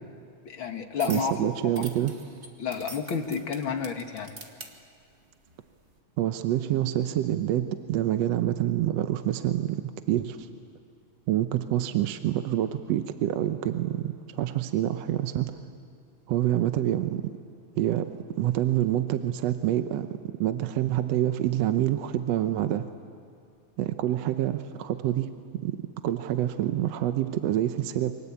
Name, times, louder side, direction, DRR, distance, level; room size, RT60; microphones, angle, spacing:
voice 1, 0.5-1.8 2.6-4.4, left 6 dB, 50° left, 5 dB, 1.9 m, -31 dB
sound 1, 1.0-1.3 1.7-4.7 5.5-5.7, right 2 dB, 30° right, 1.5 m, -42 dB
voice 2, 1.1-2.1 6.2-10.5 11.3-15.6 16.3-17.3 17.8-18.1 18.4-20.1 20.4-22.9 23.8-25.3 25.6-25.8 26.0-28.1, right 12 dB, 70° right, 8 dB, 1.8 m, -27 dB
29.0 x 24.5 x 8.4 m, 2.3 s
omnidirectional pair, 3.5 m